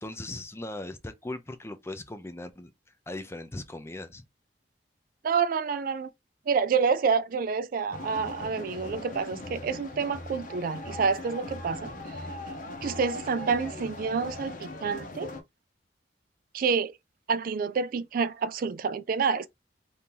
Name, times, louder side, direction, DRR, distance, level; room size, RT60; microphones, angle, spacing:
voice 1, 0.0-2.7 3.1-4.2, left 2 dB, 15° left, 0.5 m, -38 dB
voice 2, 5.2-6.1 6.5-11.9 12.8-15.3 16.5-16.9 17.3-19.5, right 5 dB, 50° right, 0.3 m, -28 dB
sound 1, 7.9-15.4, left 2 dB, 50° left, 0.8 m, -39 dB
2.9 x 2.7 x 3.6 m
head